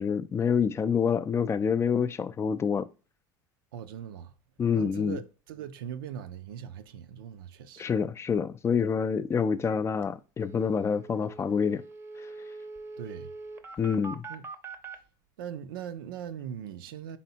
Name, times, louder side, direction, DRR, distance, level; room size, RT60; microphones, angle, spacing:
voice 1, 0.0-2.9 4.6-5.2 7.8-11.8 13.8-14.2, left 6 dB, 25° left, 0.3 m, -27 dB
voice 2, 3.7-4.3 4.7-7.9 13.0-13.3 14.3-14.4 15.4-17.2, right 9 dB, 85° right, 0.4 m, -40 dB
sound 1, 9.7-9.8 10.0-10.1 10.4-15.0, right 3 dB, 20° right, 0.6 m, -43 dB
4.2 x 3.4 x 2.7 m
supercardioid pair, 100°, 11 cm